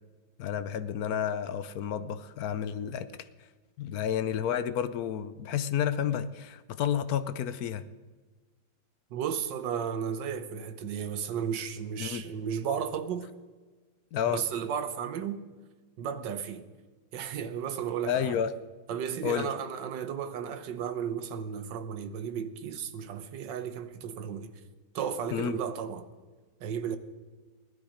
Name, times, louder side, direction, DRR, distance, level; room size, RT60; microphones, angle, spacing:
voice 1, 0.4-3.1 3.8-7.8 12.0-12.2 14.1-14.4 18.1-18.5 19.2-19.5 25.3-25.6, left 9 dB, 65° left, 1.0 m, -30 dB
voice 2, 9.1-13.3 14.3-15.4 16.0-16.6 17.1-18.4 18.9-24.5 24.9-26.1 26.6-27.0, right 8 dB, 70° right, 1.6 m, -34 dB
17.0 x 12.0 x 5.0 m
omnidirectional pair, 2.1 m